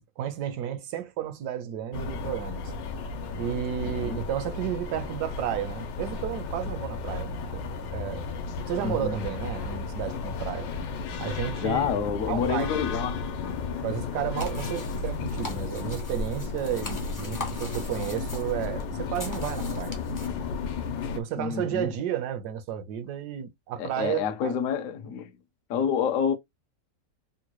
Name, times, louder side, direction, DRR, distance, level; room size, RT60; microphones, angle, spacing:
voice 1, 0.2-2.7 3.4-7.6 7.9-8.3 8.7-10.7 11.2-11.9 12.3-12.7 13.8-20.0 21.2-24.7, right 10 dB, 75° right, 1.1 m, -32 dB
sound 1, 1.9-21.2, left 4 dB, 85° left, 1.3 m, -33 dB
voice 2, 3.8-4.2 8.8-9.2 11.5-13.2 21.3-21.9 23.8-25.3 25.7-26.3, left 7 dB, 65° left, 0.8 m, -28 dB
sound 2, 14.4-20.3, left 1 dB, 30° left, 0.3 m, -41 dB
3.7 x 2.2 x 2.9 m
omnidirectional pair, 1.9 m